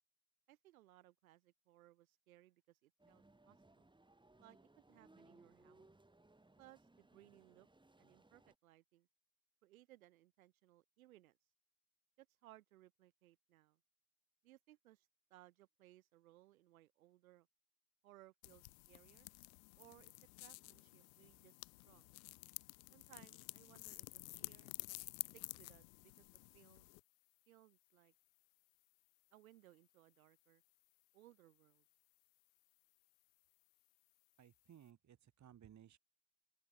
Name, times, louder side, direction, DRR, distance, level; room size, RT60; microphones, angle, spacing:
voice 1, 0.5-3.9 4.4-5.9 6.6-7.7 8.0-9.1 9.6-11.4 12.2-13.8 14.4-17.5 18.0-19.3 19.8-21.5 21.8-22.1 22.9-24.7 25.5-26.2 26.5-26.9 27.5-28.1 29.3-30.6 31.1-31.8, right 15 dB, 80° right, 6.8 m, -65 dB
sound 1, 3.0-8.5, right 2 dB, 10° right, 6.8 m, -67 dB
sound 2, 18.4-27.0, left 27 dB, 70° left, 1.4 m, -52 dB
voice 2, 34.4-36.0, right 10 dB, 40° right, 3.2 m, -61 dB
open air
hypercardioid pair, 65°, 42 cm